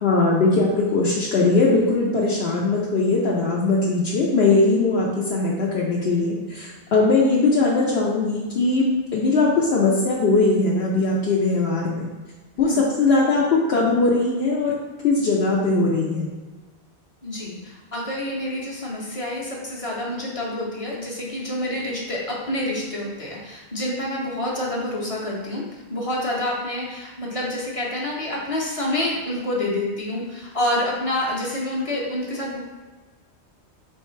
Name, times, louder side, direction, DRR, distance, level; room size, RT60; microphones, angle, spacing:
voice 1, 0.0-12.1 12.6-14.7 15.0-16.3, left 3 dB, 65° left, -4 dB, 0.9 m, -20 dB
voice 2, 17.2-25.6 25.9-32.6, left 1 dB, 35° left, -4 dB, 0.8 m, -27 dB
4.7 x 3.2 x 3.1 m, 1.3 s
omnidirectional pair, 1.1 m